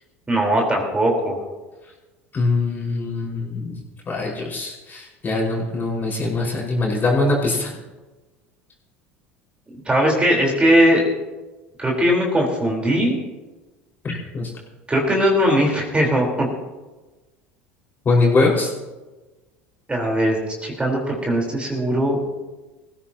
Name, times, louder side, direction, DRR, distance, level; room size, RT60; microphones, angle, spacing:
voice 1, 0.3-1.4 9.7-11.0 11.8-13.2 14.9-16.5 19.9-22.2, equal, 15° right, -1 dB, 4.3 m, -19 dB
voice 2, 2.3-3.7 4.1-7.8 14.0-14.5 18.1-18.7, left 3 dB, 30° left, -2 dB, 5.4 m, -22 dB
21.0 x 16.0 x 3.0 m, 1.2 s
hypercardioid pair, 75°, 7 cm